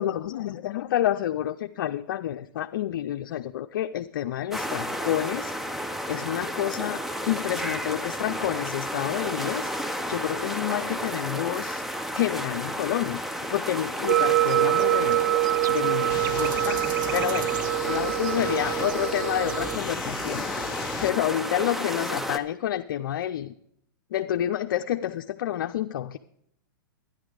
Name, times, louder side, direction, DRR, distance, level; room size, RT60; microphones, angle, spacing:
voice 1, 0.0-5.5 6.1-7.0 7.2-11.8 12.1-13.2 13.5-15.2 15.7-16.8 17.1-17.5 17.9-20.4 21.0-23.5 24.1-26.2, left 12 dB, 65° left, 7 dB, 0.5 m, -29 dB
sound 1, 4.5-22.4, equal, ahead, 0.6 m, -32 dB
sound 2, 14.1-19.8, right 16 dB, 60° right, 0.4 m, -25 dB
sound 3, 16.1-21.1, left 9 dB, 35° left, 1.2 m, -37 dB
11.5 x 10.5 x 4.8 m, 0.73 s
hypercardioid pair, 130°, 12 cm